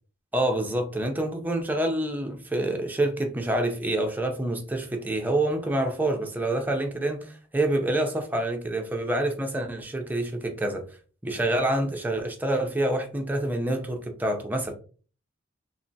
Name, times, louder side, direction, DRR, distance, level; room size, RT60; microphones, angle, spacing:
voice 1, 0.3-10.8 11.2-14.7, right 1 dB, 10° right, 0.6 m, -27 dB
3.3 x 2.9 x 2.7 m
head